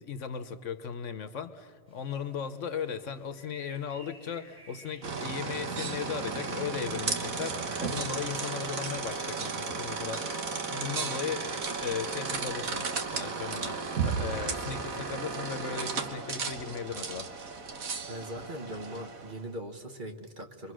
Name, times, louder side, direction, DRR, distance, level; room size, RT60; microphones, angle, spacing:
voice 1, 0.0-11.5 11.8-17.3, left 7 dB, 65° left, 10 dB, 1.2 m, -37 dB
sound 1, 1.9-14.4, equal, 15° right, 5.1 m, -57 dB
sound 2, 5.0-19.4, right 5 dB, 85° right, 1.7 m, -34 dB
voice 2, 18.1-20.7, right 1 dB, 40° right, 5 dB, 1.3 m, -40 dB
27.5 x 23.5 x 6.3 m, 2.1 s
omnidirectional pair, 1.4 m